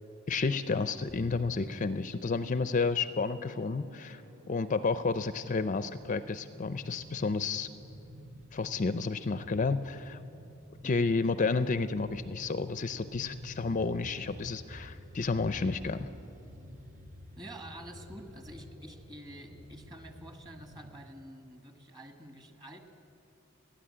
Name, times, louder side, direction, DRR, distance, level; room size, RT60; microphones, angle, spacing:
voice 1, 0.3-4.2 4.5-7.7 8.5-10.2 10.8-16.0, left 4 dB, 40° left, 12 dB, 0.5 m, -31 dB
sound 1, 1.1-20.9, equal, 40° right, 1.4 m, -50 dB
voice 2, 17.4-22.8, right 1 dB, 20° right, 5 dB, 1.8 m, -48 dB
30.0 x 10.0 x 8.8 m, 2.7 s
head